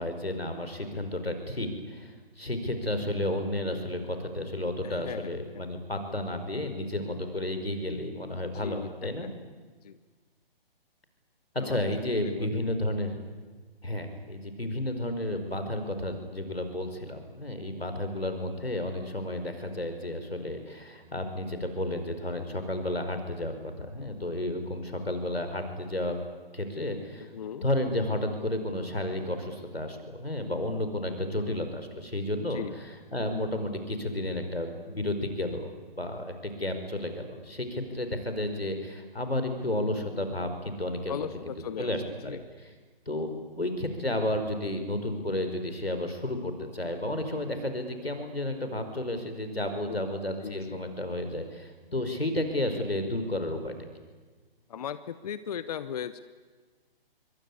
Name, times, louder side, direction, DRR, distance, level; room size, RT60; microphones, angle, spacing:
voice 1, 0.0-9.3 11.5-13.2 13.8-26.2 26.5-27.3 27.6-32.9 33.1-35.7 36.0-41.3 41.8-42.7 43.1-43.3 43.6-53.7, left 1 dB, 90° left, 7 dB, 5.0 m, -32 dB
voice 2, 4.8-5.7 8.5-8.9 9.8-10.0 11.6-11.8 12.2-12.6 27.2-27.7 32.5-32.7 41.1-41.9 42.2-42.4 49.7-50.1 50.4-50.8 54.7-56.2, left 8 dB, 40° left, 14 dB, 0.9 m, -38 dB
25.5 x 23.5 x 9.7 m, 1.4 s
figure-of-eight pair, 135°, 30 cm